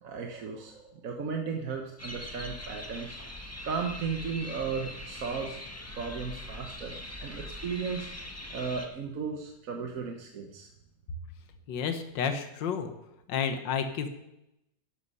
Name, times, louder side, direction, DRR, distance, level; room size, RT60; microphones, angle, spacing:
voice 1, 0.0-3.2 3.6-5.6 6.0-10.7, right 5 dB, 55° right, 3 dB, 1.3 m, -35 dB
sound 1, 2.0-8.9, left 1 dB, 10° left, 1.3 m, -42 dB
voice 2, 11.7-12.9 13.3-14.2, left 7 dB, 75° left, 8 dB, 1.8 m, -31 dB
11.5 x 11.5 x 5.6 m, 0.84 s
omnidirectional pair, 2.0 m